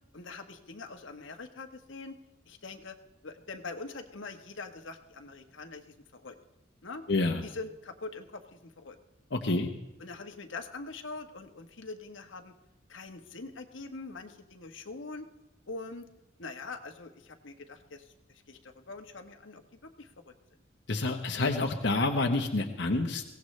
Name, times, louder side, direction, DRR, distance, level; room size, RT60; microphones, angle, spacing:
voice 1, 0.1-2.2 2.5-3.0 3.2-6.3 6.8-7.0 7.4-9.0 9.5-9.6 10.0-12.5 12.9-15.3 15.7-16.1 16.4-18.1 18.5-19.6 20.0-20.3 21.0-21.6, left 3 dB, 85° left, 5 dB, 1.2 m, -43 dB
voice 2, 7.1-7.4 9.3-9.7 20.9-23.2, left 2 dB, 65° left, 3 dB, 1.0 m, -28 dB
22.5 x 17.0 x 3.2 m, 0.94 s
head